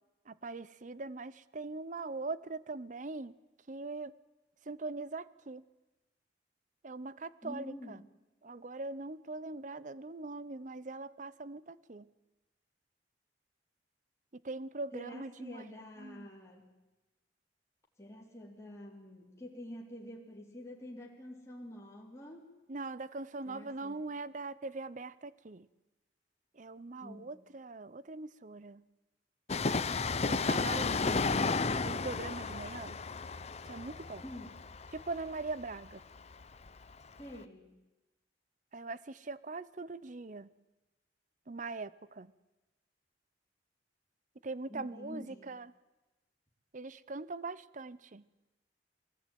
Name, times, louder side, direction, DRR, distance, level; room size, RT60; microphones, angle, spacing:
voice 1, 0.3-3.3 3.7-4.1 4.7-5.6 6.8-8.0 8.4-12.0 14.4-15.6 16.0-16.3 22.7-25.7 26.6-28.8 30.2-33.0 33.7-34.2 34.9-36.0 38.7-40.5 41.5-42.3 44.4-45.7 46.7-48.2, right 3 dB, 45° right, 18 dB, 0.7 m, -41 dB
voice 2, 7.4-8.1 14.9-16.7 18.0-22.5 23.5-24.0 27.0-27.3 34.2-34.6 37.2-37.7 44.7-45.5, left 1 dB, 15° left, -2 dB, 3.7 m, -47 dB
Train, 29.5-36.9 37.2-37.3, left 4 dB, 35° left, 0.7 m, -33 dB
22.0 x 18.0 x 9.3 m, 1.1 s
head